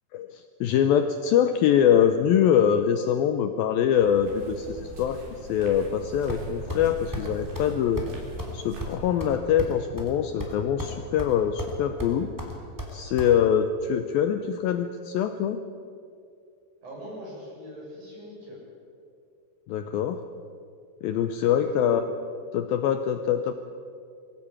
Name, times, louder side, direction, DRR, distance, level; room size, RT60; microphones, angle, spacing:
voice 1, 0.1-8.0 8.5-12.3 12.9-15.6 19.7-20.2 21.0-22.0 22.5-23.5, left 9 dB, 75° left, 8 dB, 2.3 m, -24 dB
sound 1, 4.0-9.4, right 2 dB, 75° right, 5.7 m, -42 dB
sound 2, 6.3-6.8 7.1-7.3 7.5-7.7 8.0-8.1 8.4-8.5 8.8-10.1 10.4-10.9 11.2-11.7 12.0-13.3, equal, 5° right, 2.5 m, -34 dB
voice 2, 16.8-18.6 21.4-22.0, equal, 45° right, -4 dB, 8.4 m, -41 dB
23.0 x 15.5 x 8.8 m, 2.4 s
omnidirectional pair, 4.9 m